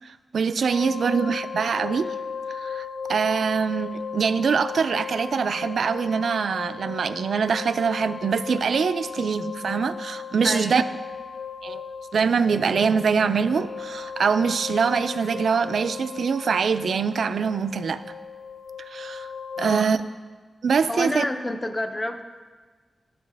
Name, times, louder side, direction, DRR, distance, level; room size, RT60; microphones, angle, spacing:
voice 1, 0.0-2.1 2.5-10.8 11.6-11.8 12.1-18.0 18.8-19.3 19.6-20.0 20.6-21.2, right 5 dB, 65° right, 12 dB, 0.3 m, -24 dB
sound 1, 0.7-19.8, left 6 dB, 75° left, 0.5 m, -36 dB
voice 2, 10.4-10.9 19.6-19.9 20.9-22.3, left 1 dB, 15° left, 7 dB, 0.5 m, -29 dB
12.0 x 7.5 x 3.4 m, 1.4 s
wide cardioid pair, 160°, 0 cm